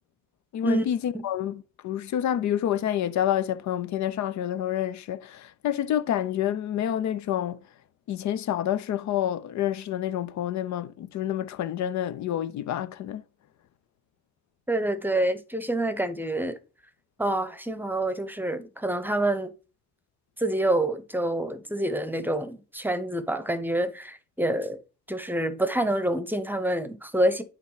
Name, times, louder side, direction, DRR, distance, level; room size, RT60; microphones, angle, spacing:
voice 1, 0.5-7.6 8.1-13.2, left 11 dB, 70° left, 0.6 m, -28 dB
voice 2, 14.7-16.6 17.2-19.5 20.4-24.8 25.1-27.4, right 1 dB, 5° right, 0.8 m, -27 dB
8.0 x 3.5 x 4.8 m
cardioid pair, 90°, 30 cm